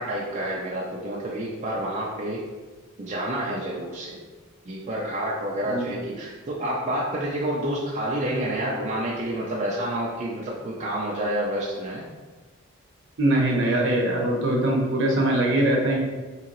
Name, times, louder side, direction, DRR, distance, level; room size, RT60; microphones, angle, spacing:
voice 1, 0.0-2.4 3.0-4.2 4.7-12.0, right 1 dB, 35° right, -5 dB, 0.4 m, -29 dB
voice 2, 13.2-16.0, right 1 dB, 60° right, -1 dB, 0.8 m, -22 dB
3.7 x 2.9 x 2.9 m, 1.3 s
head